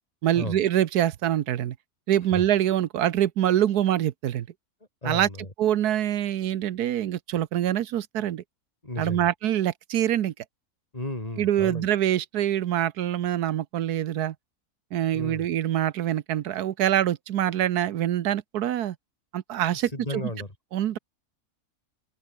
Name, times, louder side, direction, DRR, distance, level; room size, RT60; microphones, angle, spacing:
voice 1, 0.2-1.7 2.1-4.5 5.0-5.3 5.6-8.4 9.0-10.3 11.4-14.3 14.9-18.9 19.3-19.9 20.7-21.0, right 11 dB, 85° right, 1.4 m, -25 dB
voice 2, 5.0-5.5 8.8-9.3 10.9-11.9 15.1-15.5 19.7-20.5, left 1 dB, 25° left, 3.8 m, -34 dB
omnidirectional pair, 1.6 m